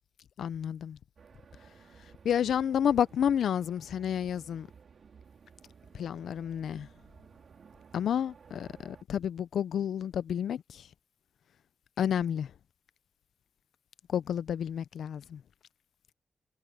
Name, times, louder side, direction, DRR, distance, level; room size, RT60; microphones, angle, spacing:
voice 1, 0.4-1.0 2.2-4.7 5.9-6.9 7.9-10.9 12.0-12.5 14.1-15.4, left 9 dB, 85° left, 0.5 m, -30 dB
sound 1, 1.2-9.0, right 6 dB, 65° right, 3.2 m, -56 dB
cardioid pair, 70°, 0 cm